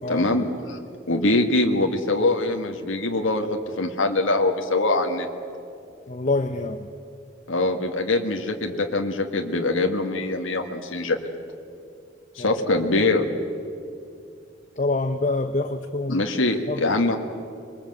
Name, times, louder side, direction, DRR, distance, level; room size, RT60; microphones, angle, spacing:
voice 1, 0.1-0.8 1.1-5.3 7.5-11.2 12.4-13.3 16.1-17.2, left 2 dB, 80° left, 3 dB, 1.7 m, -23 dB
voice 2, 6.1-6.9 12.4-12.6 14.8-16.2 16.7-17.0, left 2 dB, 35° left, 8 dB, 0.8 m, -26 dB
25.5 x 22.0 x 7.9 m, 2.5 s
head